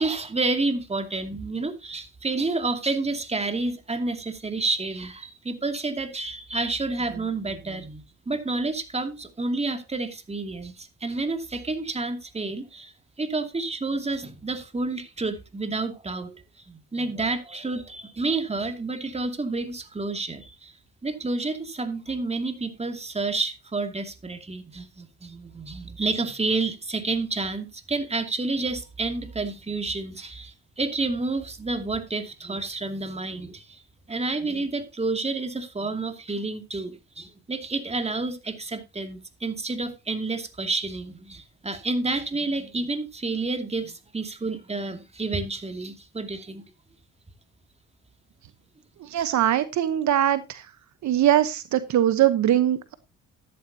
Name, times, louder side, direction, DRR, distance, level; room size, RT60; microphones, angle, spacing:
voice 1, 0.0-12.9 13.2-20.7 21.0-33.8 34.1-46.6, right 3 dB, 20° right, 2.4 m, -29 dB
voice 2, 49.0-50.7 51.0-52.9, right 11 dB, 70° right, 1.0 m, -22 dB
13.5 x 11.0 x 2.8 m
cardioid pair, 90°, 30 cm